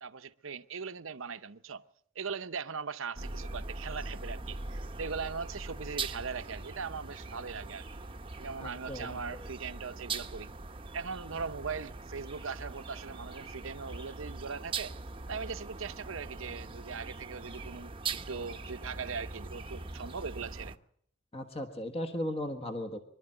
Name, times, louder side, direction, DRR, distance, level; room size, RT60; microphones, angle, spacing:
voice 1, 0.0-1.9 2.1-7.9 8.4-10.5 10.9-14.9 15.3-20.8, right 5 dB, 70° right, 0.8 m, -40 dB
sound 1, 3.2-20.8, right 3 dB, 25° right, 0.9 m, -41 dB
voice 2, 8.6-9.5 21.3-23.0, left 1 dB, 30° left, 1.4 m, -37 dB
24.5 x 12.0 x 8.9 m
head